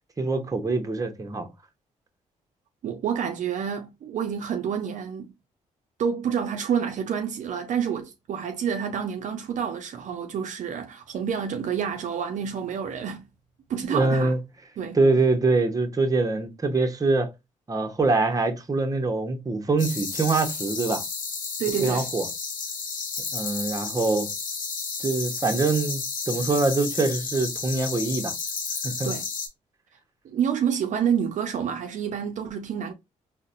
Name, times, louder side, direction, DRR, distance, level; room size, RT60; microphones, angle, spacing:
voice 1, 0.2-1.5 13.9-14.4 14.9-17.3 17.7-21.0 21.8-22.3 23.3-24.3 25.0-28.3 28.8-29.1, right 3 dB, 25° right, 0.7 m, -24 dB
voice 2, 2.8-5.3 6.0-13.3 13.7-14.3 14.8-15.0 21.6-22.1 29.0-29.2 30.2-32.9, right 7 dB, 65° right, 0.5 m, -28 dB
sound 1, 19.8-29.5, left 5 dB, 80° left, 0.9 m, -32 dB
3.9 x 2.1 x 2.5 m
cardioid pair, 75°, 14 cm